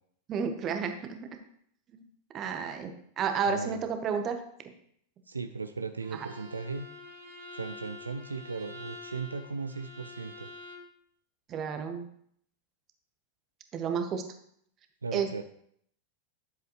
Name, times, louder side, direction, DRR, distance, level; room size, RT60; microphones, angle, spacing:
voice 1, 0.3-1.3 1.9-2.0 2.3-4.4 11.5-12.1 13.7-14.2 15.1-15.4, right 6 dB, 30° right, 7 dB, 1.1 m, -31 dB
voice 2, 3.5-3.8 5.3-6.9 7.5-10.5 15.0-15.4, right 4 dB, 75° right, 9 dB, 0.4 m, -37 dB
Bowed string instrument, 6.0-10.9, left 3 dB, 60° right, 1.4 m, -46 dB
10.5 x 7.5 x 3.1 m, 0.68 s
figure-of-eight pair, 90°, 0 cm